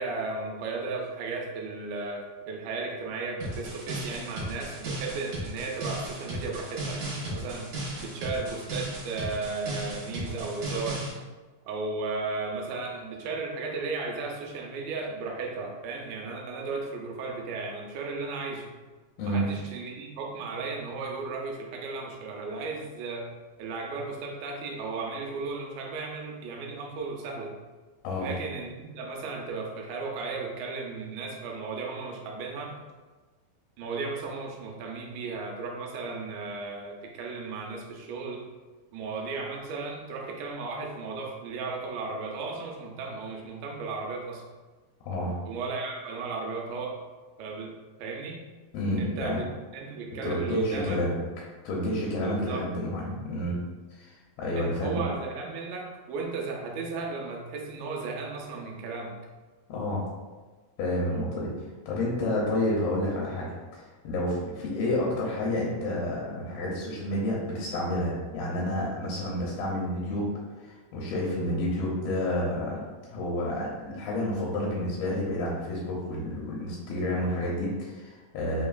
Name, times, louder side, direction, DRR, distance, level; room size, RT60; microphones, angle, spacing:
voice 1, 0.0-7.7 8.0-11.0 11.7-18.7 19.2-23.3 23.6-27.6 28.2-32.7 33.8-38.4 38.9-44.4 45.5-47.0 47.4-47.7 48.0-48.4 49.0-49.4 49.7-51.0 52.2-52.7 54.6-59.1, right 4 dB, 85° right, 0 dB, 2.5 m, -35 dB
sound 1, 3.4-11.1, right 1 dB, 60° right, 2.4 m, -35 dB
voice 2, 45.0-45.4 48.7-49.4 50.2-51.2 51.6-53.6 53.9-55.1 59.7-60.1 60.8-61.5 61.9-70.3 70.6-72.8 73.1-78.6, left 1 dB, 80° left, -4 dB, 2.5 m, -30 dB
5.8 x 2.9 x 2.3 m, 1.3 s
omnidirectional pair, 4.3 m